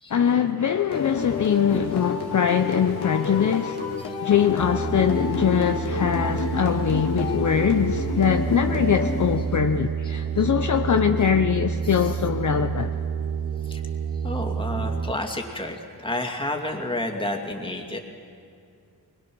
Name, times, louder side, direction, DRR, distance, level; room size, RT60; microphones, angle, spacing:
voice 1, 0.1-3.8 4.2-12.9, left 8 dB, 50° left, 0.7 m, -22 dB
sound 1, 0.9-9.8, left 4 dB, 75° left, 2.2 m, -29 dB
sound 2, 4.6-15.1, right 6 dB, 40° right, 0.7 m, -29 dB
voice 2, 14.2-18.0, left 1 dB, 15° left, 2.4 m, -30 dB
23.5 x 21.0 x 6.2 m
wide cardioid pair, 95°, 39 cm